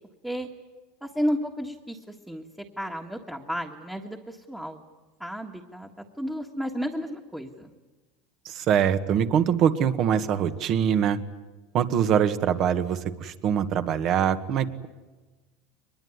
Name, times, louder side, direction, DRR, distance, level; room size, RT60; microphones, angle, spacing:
voice 1, 1.0-2.0 2.3-2.4 2.8-4.8 5.2-5.9 6.2-7.7, equal, 5° right, 1 dB, 1.7 m, -32 dB
voice 2, 8.4-11.2 11.7-14.9, right 8 dB, 50° right, 10 dB, 1.6 m, -23 dB
23.5 x 21.0 x 9.7 m, 1.2 s
supercardioid pair, 125°, 0 cm